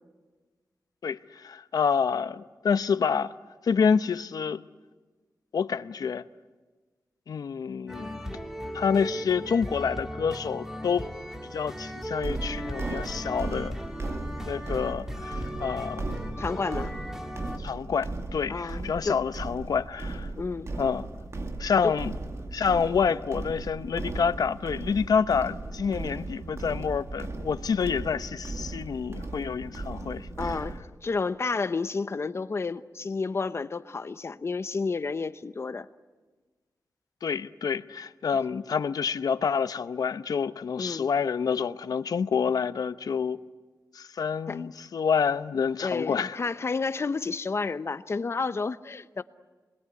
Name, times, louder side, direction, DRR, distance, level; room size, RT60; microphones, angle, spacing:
voice 1, 1.0-3.3 3.6-4.6 5.5-6.2 7.3-8.4 8.7-11.1 11.5-13.7 14.4-16.2 17.6-20.3 20.8-21.1 21.6-22.1 22.5-30.6 37.2-43.4 43.9-46.4, left 6 dB, 80° left, 0.8 m, -28 dB
sound 1, 7.9-17.6, equal, 5° right, 2.1 m, -37 dB
sound 2, 12.2-30.8, right 2 dB, 45° right, 2.1 m, -36 dB
voice 2, 16.4-16.9 18.5-19.2 20.4-20.7 21.8-21.9 30.4-30.8 31.0-35.9 40.8-41.1 44.5-44.6 45.8-49.2, left 4 dB, 45° left, 0.9 m, -30 dB
28.0 x 21.5 x 9.6 m
wide cardioid pair, 120°, 6 cm